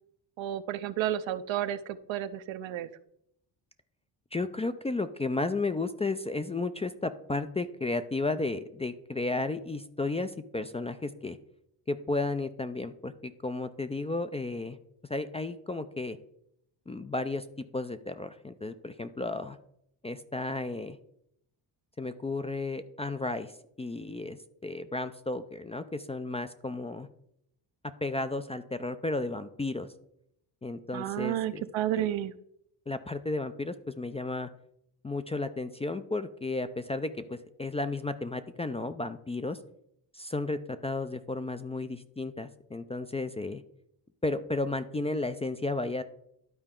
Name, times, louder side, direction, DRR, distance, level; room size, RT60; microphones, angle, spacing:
voice 1, 0.4-2.9 30.9-32.3, right 12 dB, 75° right, 12 dB, 0.7 m, -31 dB
voice 2, 4.3-11.4 11.9-14.8 15.1-16.2 16.9-17.5 17.7-19.6 20.0-21.0 22.0-24.4 24.6-27.1 28.0-29.9 30.6-31.6 31.9-32.1 32.9-34.5 35.0-39.6 40.1-43.6 44.2-46.0, left 2 dB, 15° left, 10 dB, 0.3 m, -33 dB
12.0 x 4.4 x 3.7 m, 0.74 s
cardioid pair, 95°, 45 cm